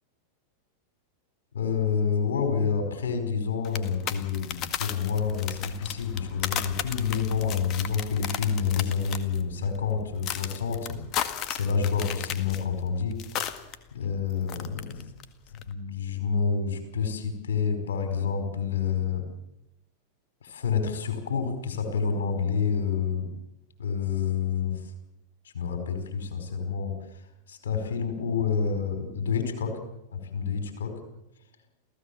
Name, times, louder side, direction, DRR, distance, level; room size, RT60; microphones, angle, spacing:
voice 1, 1.5-11.0 11.5-13.2 13.9-15.0 15.7-19.3 20.4-23.3 23.8-24.9 25.5-26.9 27.5-29.8 30.1-30.9, left 6 dB, 65° left, 7 dB, 4.9 m, -28 dB
sound 1, 3.6-13.8 14.0-15.2 15.5-15.7, left 10 dB, 35° left, 1.9 m, -35 dB
28.5 x 16.5 x 7.2 m, 0.89 s
figure-of-eight pair, 90°, 0 cm